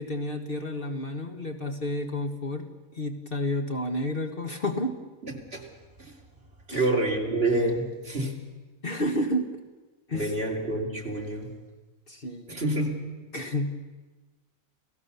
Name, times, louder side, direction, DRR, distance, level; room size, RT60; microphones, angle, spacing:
voice 1, 0.0-2.7 2.9-5.0 6.7-6.9 8.8-9.5 10.1-10.3 12.1-12.6 13.3-13.7, left 1 dB, 45° left, 5 dB, 1.7 m, -30 dB
voice 2, 5.2-5.6 6.0-6.1 6.7-8.4 10.1-11.5 12.5-13.0, right 2 dB, 45° right, 0 dB, 3.5 m, -28 dB
29.5 x 17.0 x 7.0 m, 1.2 s
omnidirectional pair, 1.4 m